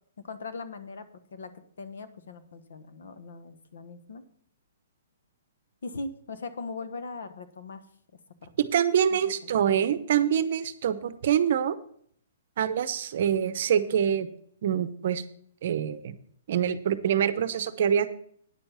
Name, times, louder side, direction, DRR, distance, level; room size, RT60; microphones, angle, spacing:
voice 1, 0.2-4.2 5.8-7.8 8.4-8.5 9.1-9.5, left 3 dB, 75° left, 11 dB, 1.2 m, -40 dB
voice 2, 8.6-11.8 12.6-14.3 14.6-15.2 15.6-16.2 16.5-18.1, right 9 dB, 50° right, 13 dB, 0.8 m, -25 dB
9.7 x 7.0 x 5.6 m, 0.62 s
hypercardioid pair, 170°, 0 cm